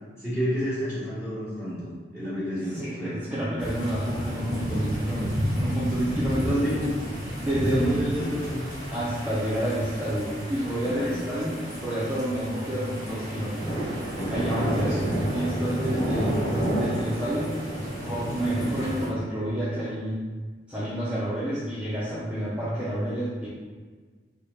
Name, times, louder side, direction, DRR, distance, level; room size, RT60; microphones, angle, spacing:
voice 1, 0.2-3.2 6.4-6.9 7.6-8.6 10.8-11.2 14.1-15.0, equal, 15° left, -12 dB, 1.5 m, -30 dB
voice 2, 2.7-6.9 7.4-8.3 8.9-13.9 14.3-17.6 18.0-20.3 20.7-23.5, right 1 dB, 5° right, -11 dB, 0.5 m, -29 dB
sound 1, 3.6-19.1, equal, 40° left, 1.0 m, -31 dB
3.3 x 2.1 x 4.0 m, 1.4 s
head